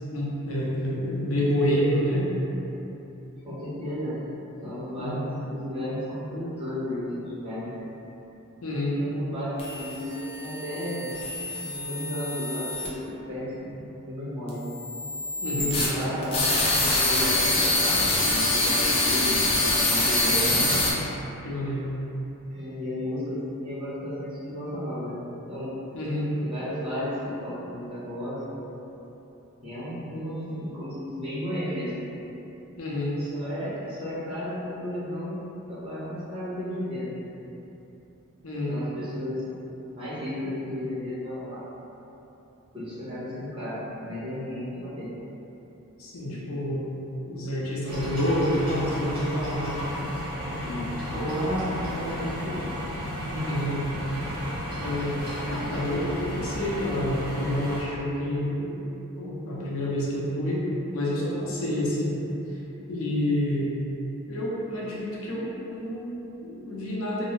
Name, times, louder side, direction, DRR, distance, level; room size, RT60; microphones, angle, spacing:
voice 1, 0.1-2.3 5.0-5.3 8.6-9.0 15.4-15.8 20.5-21.1 21.4-21.9 25.9-26.3 32.8-33.2 38.4-38.8 46.0-46.9 47.3-49.7 53.4-53.8 54.8-55.2 55.5-58.7 59.2-62.2 62.9-63.7 64.3-67.3, left 1 dB, 70° left, -6 dB, 0.6 m, -28 dB
voice 2, 3.4-4.2 4.6-7.7 8.0-8.1 8.9-11.1 11.6-14.6 15.5-20.8 22.5-25.7 26.4-28.7 29.6-31.9 33.2-37.1 37.4-37.5 38.7-39.6 39.9-41.6 42.7-45.1 46.2-46.4 50.6-52.6 53.1-53.5, equal, 25° right, -13 dB, 1.0 m, -33 dB
sound 1, 9.6-12.9 14.5-20.9, left 2 dB, 25° left, 0.4 m, -25 dB
sound 2, 47.9-57.8, equal, 45° right, 0.7 m, -33 dB
2.6 x 2.1 x 3.1 m, 2.9 s
head